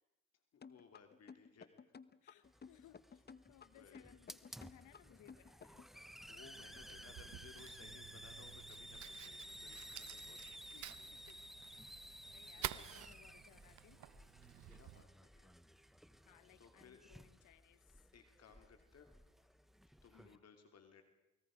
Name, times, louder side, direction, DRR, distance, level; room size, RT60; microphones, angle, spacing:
voice 1, 0.5-1.7 2.4-2.6 3.7-4.2 6.3-11.1 11.8-12.0 12.4-12.9 14.7-15.5 16.6-17.0 18.1-19.1 20.0-21.0, left 6 dB, 55° left, 6 dB, 2.7 m, -62 dB
sound 1, 0.6-6.0, left 6 dB, 35° left, 1.0 m, -56 dB
voice 2, 2.2-5.9 10.7-11.4 12.3-14.0 16.3-18.1 20.1-20.4, left 12 dB, 80° left, 15 dB, 1.3 m, -65 dB
Hiss, 2.4-20.4, equal, ahead, 0.9 m, -55 dB
Fire, 6.3-15.0, right 14 dB, 70° right, 0.8 m, -51 dB
29.0 x 20.5 x 5.1 m, 0.98 s
cardioid pair, 90°, 30 cm